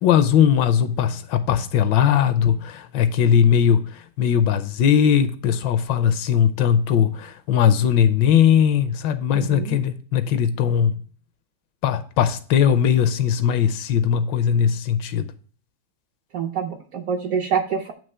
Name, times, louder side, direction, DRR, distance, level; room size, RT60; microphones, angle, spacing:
voice 1, 0.0-11.0 11.8-15.3, left 8 dB, 75° left, 1.2 m, -19 dB
voice 2, 9.3-9.8 16.3-17.9, right 7 dB, 65° right, 0.8 m, -26 dB
8.9 x 3.1 x 5.3 m
omnidirectional pair, 2.1 m